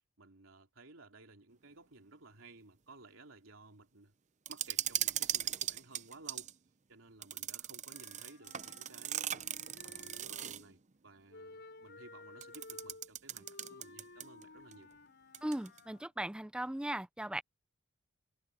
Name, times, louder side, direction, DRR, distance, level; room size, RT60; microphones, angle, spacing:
voice 1, 0.2-4.1 4.5-6.5 6.9-9.5 9.8-14.9, right 2 dB, 85° right, 2.9 m, -57 dB
sound 1, 4.5-6.5 7.2-10.7 12.4-14.4 14.7-14.8 15.3-15.8, right 11 dB, 35° right, 0.6 m, -39 dB
Wind instrument woodwind instrument, 7.8-10.7 11.3-16.1, left 3 dB, 60° left, 4.7 m, -55 dB
voice 2, 15.4-17.4, right 1 dB, 5° right, 0.3 m, -38 dB
head